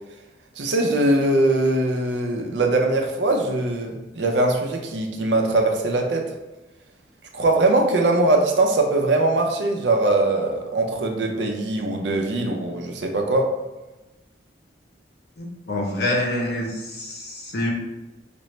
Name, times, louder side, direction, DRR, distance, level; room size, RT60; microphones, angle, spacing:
voice 1, 0.6-6.3 7.3-13.5, right 2 dB, 75° right, 3 dB, 0.6 m, -21 dB
voice 2, 15.4-17.7, left 1 dB, 60° left, -1 dB, 0.8 m, -26 dB
5.1 x 2.0 x 3.1 m, 1.1 s
head